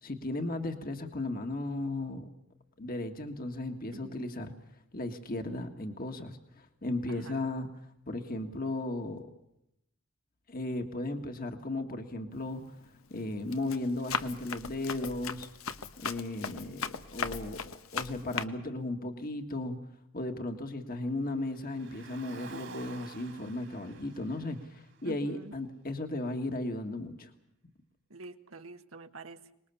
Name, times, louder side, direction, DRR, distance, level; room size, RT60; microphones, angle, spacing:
voice 1, 0.0-2.3 2.8-4.5 4.9-7.7 8.1-9.3 10.5-12.7 13.1-15.5 16.0-17.6 17.9-19.8 20.1-27.3, left 2 dB, 45° left, 5 dB, 1.7 m, -35 dB
voice 2, 3.9-4.3 7.1-7.4 25.0-25.5 28.1-29.4, right 2 dB, 85° right, 7 dB, 1.7 m, -47 dB
Run, 12.4-12.7 13.2-18.4, left 6 dB, 90° left, 1.2 m, -38 dB
Car, 21.4-25.8, right 4 dB, 60° right, 2.7 m, -50 dB
25.5 x 20.5 x 7.1 m, 0.80 s
head